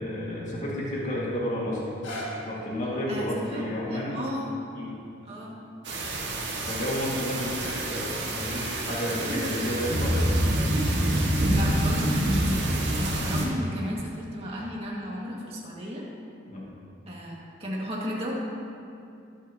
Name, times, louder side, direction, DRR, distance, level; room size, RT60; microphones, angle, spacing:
voice 1, 0.0-1.8 2.4-4.2 4.8-4.9 6.7-10.4 16.4-16.7, left 1 dB, 40° left, -5 dB, 2.1 m, -31 dB
sound 1, 2.0-7.9 8.5-8.6, equal, 75° left, 1.8 m, -44 dB
voice 2, 3.1-4.5 5.3-5.5 9.1-9.5 11.1-16.0 17.1-18.3, equal, 30° right, -4 dB, 2.1 m, -35 dB
sound 2, 5.8-13.5, right 1 dB, 65° right, 1.9 m, -26 dB
21.5 x 8.1 x 3.0 m, 2.5 s
head